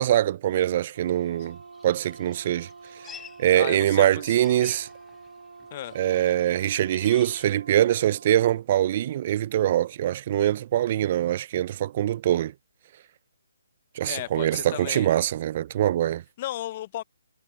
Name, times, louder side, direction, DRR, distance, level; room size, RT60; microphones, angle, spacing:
voice 1, 0.0-1.6 1.8-2.7 3.4-4.9 6.0-12.5 14.0-16.2, right 12 dB, 35° right, 0.4 m, -23 dB
Brass instrument, 0.9-8.6, right 4 dB, 80° right, 3.4 m, -47 dB
sound 1, 1.1-7.5, left 8 dB, 10° left, 3.0 m, -50 dB
voice 2, 3.5-4.3 5.7-6.0 14.1-15.1 16.4-17.0, left 14 dB, 30° left, 0.7 m, -35 dB
hypercardioid pair, 155°, 0 cm